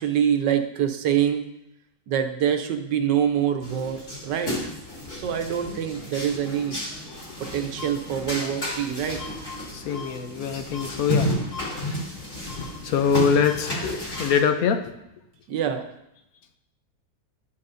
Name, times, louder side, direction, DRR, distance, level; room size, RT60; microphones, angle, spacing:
voice 1, 0.0-1.5 2.1-4.6 5.1-6.8 7.4-9.2 15.5-15.9, right 9 dB, 75° right, 6 dB, 1.4 m, -25 dB
Aldi Supermarkt, 3.6-14.4, equal, 40° left, 3.0 m, -32 dB
voice 2, 9.6-12.0 12.4-14.9, left 6 dB, 70° left, 7 dB, 0.9 m, -25 dB
11.5 x 5.6 x 2.6 m, 0.83 s
omnidirectional pair, 2.0 m